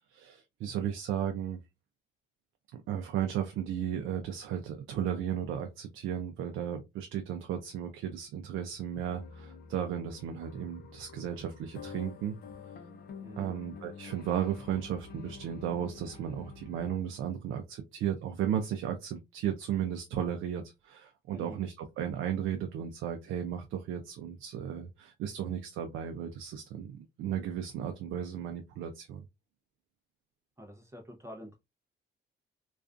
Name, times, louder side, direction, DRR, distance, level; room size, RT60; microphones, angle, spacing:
voice 1, 0.1-1.6 2.9-12.4 13.4-29.2, right 9 dB, 85° right, 0.4 m, -35 dB
sound 1, 8.9-17.0, left 5 dB, 50° left, 0.5 m, -48 dB
voice 2, 13.2-13.5 21.3-21.6 30.6-31.6, equal, 15° right, 0.6 m, -46 dB
2.4 x 2.3 x 2.3 m
cardioid pair, 90°, 20 cm